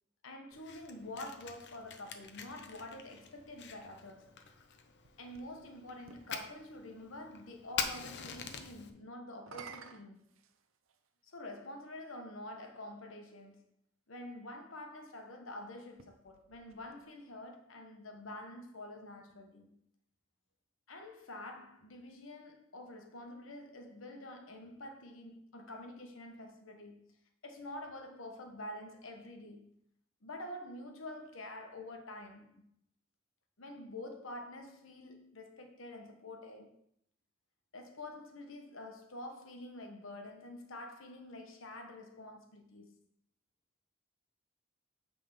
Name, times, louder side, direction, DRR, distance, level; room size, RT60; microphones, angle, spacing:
voice 1, 0.2-4.4 5.2-10.3 11.2-13.7 14.1-19.8 20.9-27.2 27.4-29.8 30.2-32.7 33.6-36.7 37.7-43.0, left 1 dB, 75° left, 1.2 m, -47 dB
Fire, 0.5-8.9, left 6 dB, 60° left, 0.8 m, -45 dB
sound 1, 4.6-6.5 9.3-11.1 12.0-12.1 15.8-17.4, right 5 dB, 85° right, 0.7 m, -54 dB
8.7 x 3.8 x 5.5 m
head